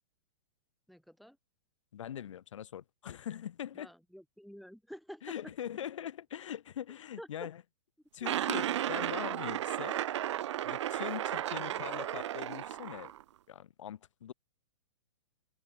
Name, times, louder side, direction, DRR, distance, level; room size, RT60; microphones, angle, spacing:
voice 1, 0.9-1.4 3.7-5.5 7.2-7.5 8.2-8.3 11.6-11.9, equal, ahead, 2.3 m, -49 dB
voice 2, 1.9-3.9 5.2-7.6 8.1-10.0 10.6-13.1 13.5-14.3, left 10 dB, 70° left, 1.9 m, -42 dB
sound 1, 8.2-13.2, right 12 dB, 65° right, 0.6 m, -34 dB
hypercardioid pair, 160°, 16 cm